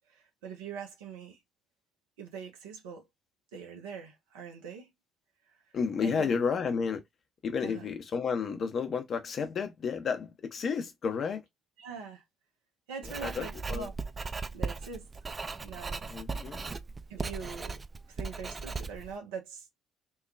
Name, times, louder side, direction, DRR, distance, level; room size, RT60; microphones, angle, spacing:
voice 1, 0.1-1.4 2.2-3.1 3.5-4.9 6.0-6.3 7.6-7.9 11.8-12.2 12.9-13.9 14.5-15.1 15.6-16.1 17.1-17.8 18.1-19.7, right 6 dB, 70° right, 0.7 m, -43 dB
voice 2, 5.7-7.0 7.4-11.4 13.1-13.9 16.1-16.7, left 6 dB, 45° left, 0.7 m, -31 dB
Writing, 13.0-19.2, right 4 dB, 25° right, 0.3 m, -38 dB
3.0 x 2.2 x 2.2 m
figure-of-eight pair, 45°, 0 cm